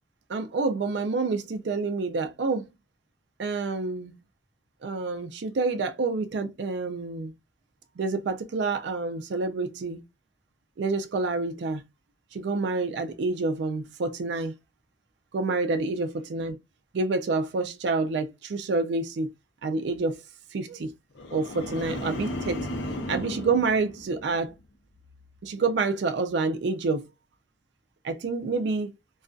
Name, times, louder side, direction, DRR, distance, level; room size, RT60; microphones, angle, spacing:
voice 1, 0.3-2.7 3.4-4.2 4.8-7.3 8.0-10.0 10.8-11.8 12.3-14.5 15.3-16.6 16.9-19.3 19.6-20.2 20.5-20.9 21.3-22.7 23.1-24.5 25.4-27.0 28.0-28.9, right 3 dB, 70° right, 0.4 m, -28 dB
sound 1, 21.1-24.6 25.0-25.4, left 1 dB, 85° left, 0.6 m, -35 dB
2.5 x 2.3 x 2.2 m
head